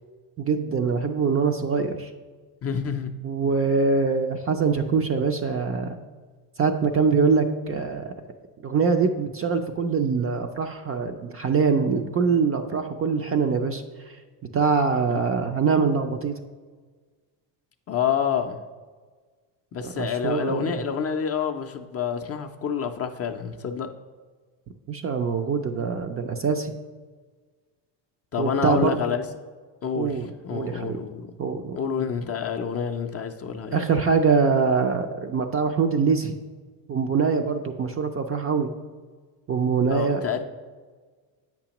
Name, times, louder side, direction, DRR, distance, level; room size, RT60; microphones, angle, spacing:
voice 1, 0.4-2.1 3.2-6.0 6.6-8.1 8.6-13.8 14.5-16.4 19.8-20.7 24.9-26.7 28.4-29.0 29.9-31.0 31.4-31.8 33.7-36.4 36.9-38.7 39.5-40.2, right 5 dB, 30° right, 6 dB, 0.4 m, -23 dB
voice 2, 2.6-3.1 15.1-15.3 17.9-18.6 19.7-23.9 28.3-29.2 29.8-31.3 31.7-33.8 39.9-40.4, left 7 dB, 30° left, 4 dB, 0.4 m, -28 dB
8.2 x 5.9 x 2.9 m, 1.5 s
supercardioid pair, 90°, 49 cm